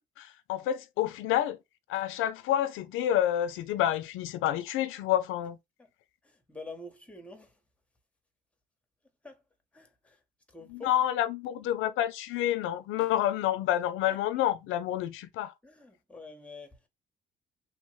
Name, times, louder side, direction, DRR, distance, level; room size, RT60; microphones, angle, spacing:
voice 1, 0.0-1.6 1.9-5.6 10.7-15.5, left 12 dB, 85° left, 0.4 m, -29 dB
voice 2, 6.2-7.6 9.2-9.4 9.7-10.2 10.5-10.9 14.1-14.4 15.6-16.9, left 3 dB, 5° left, 0.7 m, -47 dB
3.0 x 2.0 x 3.0 m
cardioid pair, 90°, 20 cm